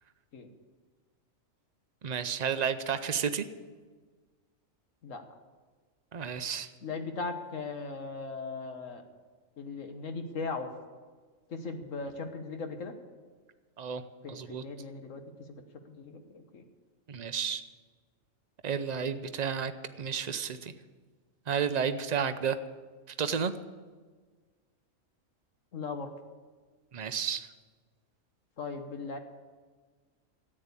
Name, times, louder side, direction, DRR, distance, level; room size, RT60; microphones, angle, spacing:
voice 1, 2.0-3.5 6.1-6.7 13.8-14.0 14.3-14.6 17.1-17.6 18.6-20.7 21.5-22.6 23.2-23.5 26.9-27.5, right 7 dB, 40° right, 10 dB, 0.7 m, -31 dB
voice 2, 6.8-9.0 9.6-10.7 11.5-12.9 14.2-15.2 15.5-15.6 15.9-16.6 25.7-26.1 28.6-29.2, left 4 dB, 70° left, 6 dB, 1.6 m, -38 dB
13.5 x 9.1 x 8.3 m, 1.4 s
omnidirectional pair, 1.4 m